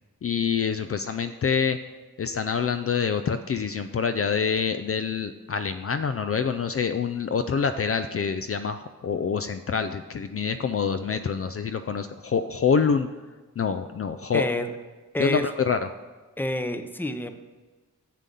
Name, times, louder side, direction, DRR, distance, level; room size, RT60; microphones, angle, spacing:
voice 1, 0.2-1.8 2.2-13.1 13.6-14.4 15.2-15.8, left 6 dB, 45° left, 9 dB, 0.4 m, -26 dB
voice 2, 14.3-14.7 15.1-15.4 16.4-17.4, left 1 dB, 5° left, 9 dB, 0.6 m, -28 dB
7.5 x 7.4 x 5.4 m, 1.3 s
cardioid pair, 65°, 31 cm